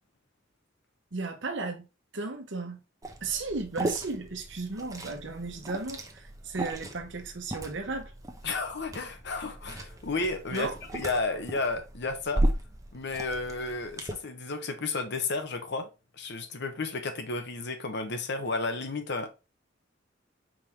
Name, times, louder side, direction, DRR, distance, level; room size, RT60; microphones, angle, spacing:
voice 1, 1.1-1.8 2.1-2.8 3.2-8.1 10.5-10.8, right 3 dB, 65° right, 1.0 m, -35 dB
Liquid, 3.0-14.1, right 1 dB, 20° right, 0.8 m, -36 dB
voice 2, 8.4-12.4 12.9-15.9 16.1-19.3, left 3 dB, 60° left, 0.9 m, -32 dB
4.9 x 3.6 x 3.0 m
head